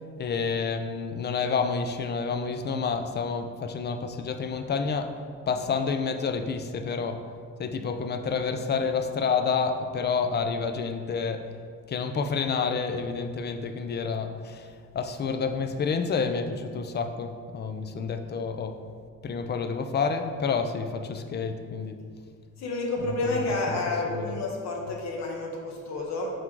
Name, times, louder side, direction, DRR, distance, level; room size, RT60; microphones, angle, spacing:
voice 1, 0.2-5.1 5.5-7.2 7.6-11.5 11.9-14.7 14.9-18.8 19.2-22.0 23.0-23.1 23.7-23.8 24.1-24.4, left 5 dB, 35° left, 7 dB, 0.5 m, -29 dB
voice 2, 22.6-26.3, left 2 dB, 65° left, 0 dB, 1.2 m, -30 dB
6.0 x 4.7 x 4.6 m, 2.1 s
cardioid pair, 130°, 29 cm